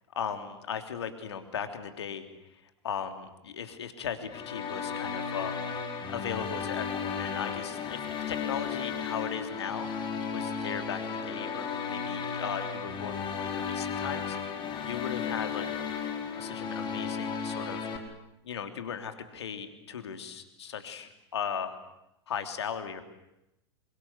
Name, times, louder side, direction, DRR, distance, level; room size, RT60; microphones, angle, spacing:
voice 1, 0.1-5.6 6.1-14.4 14.8-15.7 16.0-16.1 16.4-17.8 18.4-21.8 22.3-23.0, left 7 dB, 80° left, 7 dB, 3.2 m, -37 dB
sound 1, 4.3-18.0, left 6 dB, 35° left, 5.3 m, -34 dB
28.0 x 24.5 x 8.2 m, 0.89 s
hypercardioid pair, 90°, 14 cm